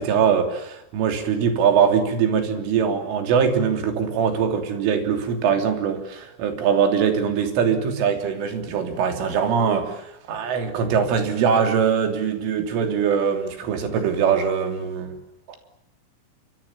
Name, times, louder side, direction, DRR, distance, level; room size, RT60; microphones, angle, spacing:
voice 1, 0.0-15.1, right 7 dB, 80° right, 6 dB, 5.7 m, -22 dB
27.0 x 24.5 x 7.4 m, 0.82 s
omnidirectional pair, 5.6 m